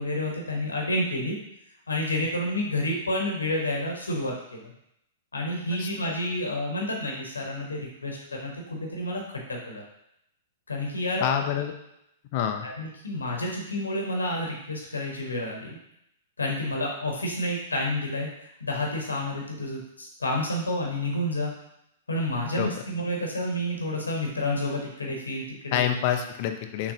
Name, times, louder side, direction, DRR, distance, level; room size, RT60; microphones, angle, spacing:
voice 1, 0.0-1.4 1.9-4.7 5.3-9.8 10.7-11.6 12.6-15.8 16.4-18.3 18.6-21.5 22.1-25.8, left 1 dB, 75° left, 0 dB, 1.0 m, -30 dB
voice 2, 5.8-6.1 11.2-11.7 12.3-12.7 22.6-22.8 25.7-26.9, left 9 dB, 40° left, 6 dB, 0.5 m, -27 dB
6.3 x 3.0 x 2.7 m, 0.79 s
figure-of-eight pair, 105°, 0 cm